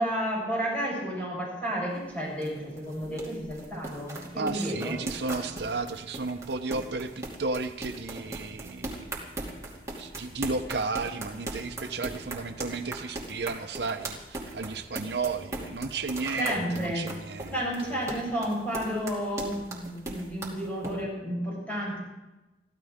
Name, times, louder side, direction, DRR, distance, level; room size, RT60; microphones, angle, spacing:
voice 1, 0.0-5.0 16.3-17.1 17.5-22.0, equal, 10° left, -5 dB, 7.9 m, -31 dB
sound 1, 1.9-20.9, right 2 dB, 20° right, 2.6 m, -39 dB
voice 2, 4.4-9.2 10.0-17.9, right 3 dB, 65° right, 7 dB, 0.8 m, -33 dB
24.0 x 15.0 x 3.6 m, 1.0 s
head